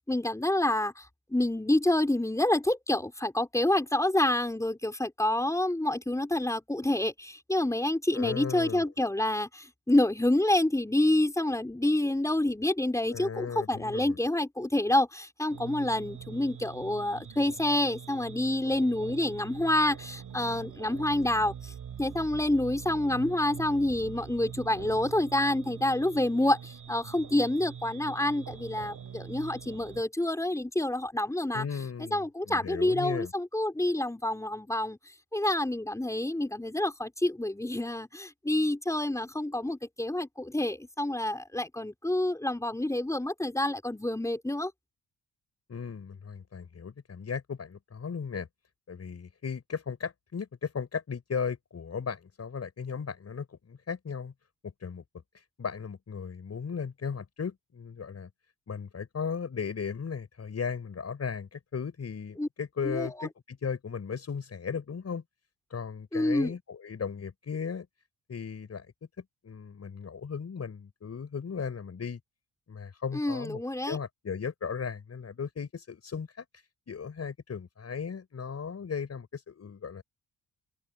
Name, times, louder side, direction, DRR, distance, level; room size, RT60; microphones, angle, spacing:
voice 1, 0.1-1.0 1.3-21.7 22.0-31.6 32.1-35.0 35.3-44.7 62.4-62.5 62.8-63.3 66.1-66.5 73.1-74.0, left 1 dB, 10° left, 4.3 m, -28 dB
voice 2, 8.1-8.9 13.1-14.2 31.5-33.3 45.7-48.5 48.9-54.3 54.6-55.0 55.3-58.3 58.7-65.2 65.7-67.9 68.3-68.9 69.4-72.2 72.7-80.0, left 6 dB, 45° left, 6.0 m, -36 dB
sound 1, 15.5-30.0, right 8 dB, 60° right, 7.2 m, -44 dB
hypercardioid pair, 50°, 36 cm